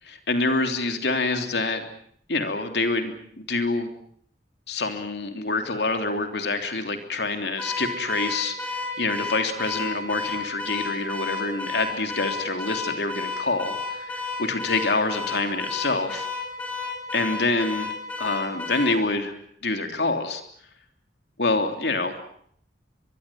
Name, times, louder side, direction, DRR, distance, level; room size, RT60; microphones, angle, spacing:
voice 1, 0.1-1.8 2.3-3.9 4.7-16.3 17.1-17.9 18.2-20.4 21.4-22.2, left 3 dB, 70° left, 6 dB, 3.2 m, -26 dB
Car / Alarm, 7.6-19.0, left 4 dB, 10° left, 5.6 m, -32 dB
23.5 x 23.0 x 7.6 m, 0.64 s
head